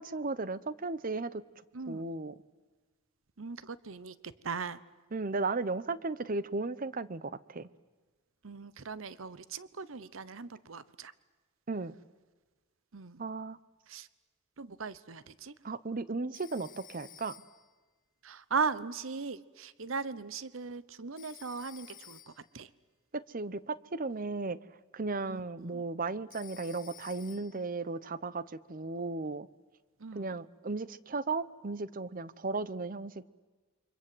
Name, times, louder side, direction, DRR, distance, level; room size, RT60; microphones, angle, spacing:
voice 1, 0.0-1.4 1.9-2.4 5.1-7.7 11.7-11.9 13.2-13.6 15.6-17.4 23.1-24.6 24.9-29.5 30.1-33.2, right 3 dB, 40° right, 17 dB, 0.8 m, -35 dB
voice 2, 1.7-2.1 3.4-4.8 8.4-11.1 12.9-13.2 13.9-14.1 14.6-15.5 18.2-22.7 25.3-25.8 30.0-30.3, right 5 dB, 70° right, 17 dB, 0.9 m, -38 dB
Telephone, 16.3-17.8 21.2-22.6 26.3-27.7, left 10 dB, 40° left, 1.0 m, -53 dB
29.0 x 25.0 x 7.8 m, 1.3 s
head